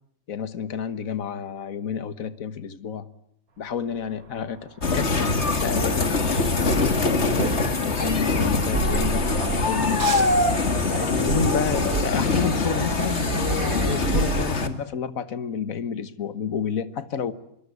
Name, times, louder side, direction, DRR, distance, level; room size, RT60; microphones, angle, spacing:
voice 1, 0.3-3.1 3.6-7.4 7.8-10.3 10.8-17.3, left 7 dB, 75° left, 1.7 m, -30 dB
sound 1, 4.1-14.5, right 4 dB, 80° right, 2.2 m, -32 dB
sound 2, 4.8-14.7, left 3 dB, 50° left, 2.4 m, -23 dB
26.0 x 23.0 x 9.5 m
omnidirectional pair, 1.5 m